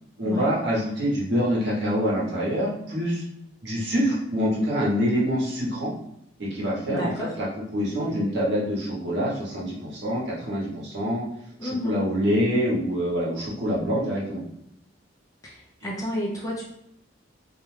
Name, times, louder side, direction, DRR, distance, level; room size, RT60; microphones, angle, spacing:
voice 1, 0.2-3.2 3.6-5.9 6.4-7.5 7.7-11.2 11.6-14.4, equal, 60° right, -5 dB, 0.9 m, -25 dB
voice 2, 6.9-7.3 11.6-12.0 15.4-16.6, left 1 dB, 20° left, -3 dB, 0.5 m, -30 dB
2.4 x 2.2 x 3.1 m, 0.75 s
head